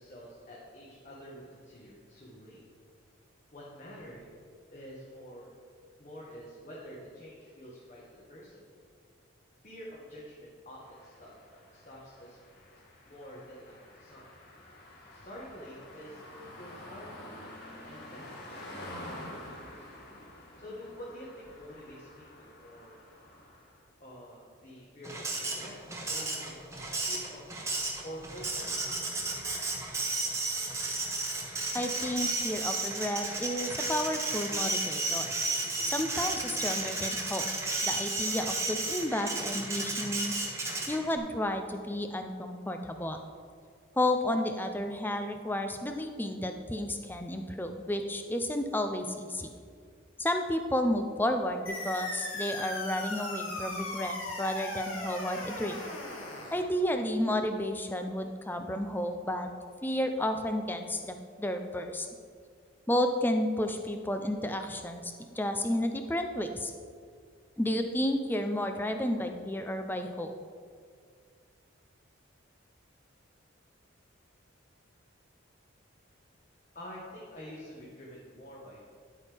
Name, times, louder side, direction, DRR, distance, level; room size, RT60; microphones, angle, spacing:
voice 1, 0.0-2.6 3.5-4.3 4.7-5.5 6.0-8.6 9.6-12.4 13.1-14.3 15.1-16.2 16.6-17.2 17.8-19.9 20.6-23.0 24.0-25.7 26.1-26.6 27.0-27.4 28.0-29.5 76.7-78.8, equal, 35° left, -6 dB, 1.4 m, -48 dB
sound 1, 10.8-23.8, left 1 dB, 55° left, 2.4 m, -48 dB
Printer, 25.0-41.2, right 2 dB, 15° right, 1.1 m, -33 dB
voice 2, 31.7-35.3 35.8-37.5 37.8-40.3 40.9-43.2 44.0-49.5 50.2-55.8 56.5-59.5 59.8-62.1 62.9-66.7 67.6-70.3, left 1 dB, 10° left, 6 dB, 0.5 m, -32 dB
sound 2, 51.7-56.7, left 1 dB, 85° left, 1.8 m, -38 dB
11.0 x 8.3 x 3.5 m, 2.1 s
head